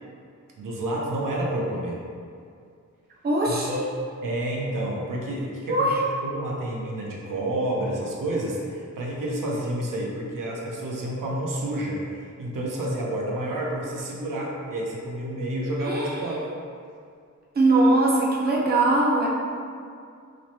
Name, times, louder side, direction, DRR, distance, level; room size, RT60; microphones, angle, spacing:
voice 1, 0.6-2.0 3.5-3.8 4.2-5.9 6.2-16.5, right 1 dB, 85° right, -3 dB, 0.5 m, -29 dB
voice 2, 3.2-3.8 5.7-6.0 15.8-16.1 17.6-19.3, right 2 dB, 30° right, -4 dB, 0.5 m, -21 dB
3.0 x 2.0 x 2.6 m, 2.3 s
wide cardioid pair, 90°, 31 cm